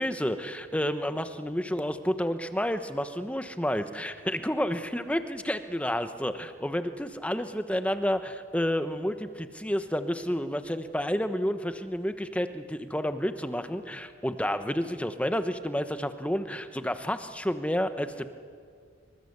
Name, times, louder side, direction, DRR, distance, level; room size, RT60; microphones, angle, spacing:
voice 1, 0.0-18.3, equal, 5° left, 9 dB, 1.0 m, -30 dB
25.5 x 24.5 x 8.1 m, 2.2 s
head